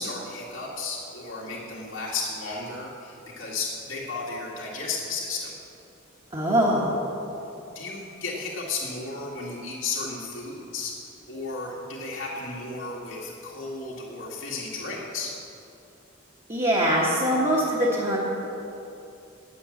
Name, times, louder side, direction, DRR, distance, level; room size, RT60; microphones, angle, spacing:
voice 1, 0.0-5.5 7.7-10.9 11.3-15.3, left 3 dB, 75° left, -5 dB, 2.0 m, -34 dB
voice 2, 6.3-7.1 16.5-18.2, equal, 30° right, -6 dB, 1.4 m, -23 dB
9.8 x 7.8 x 7.2 m, 2.8 s
head